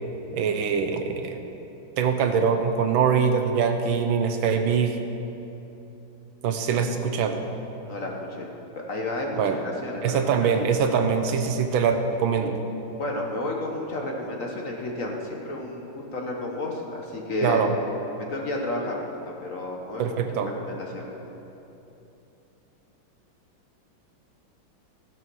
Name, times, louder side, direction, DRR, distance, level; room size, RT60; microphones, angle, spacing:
voice 1, 0.3-1.4 2.0-5.0 6.4-7.4 9.4-9.6 10.0-12.6 17.4-17.7 20.0-20.5, right 6 dB, 80° right, 6 dB, 1.6 m, -23 dB
voice 2, 7.8-8.5 8.7-10.2 12.9-17.6 18.3-19.0 19.3-20.0 20.6-21.1, left 2 dB, 45° left, 0 dB, 1.4 m, -31 dB
15.5 x 7.2 x 6.2 m, 2.9 s
omnidirectional pair, 2.2 m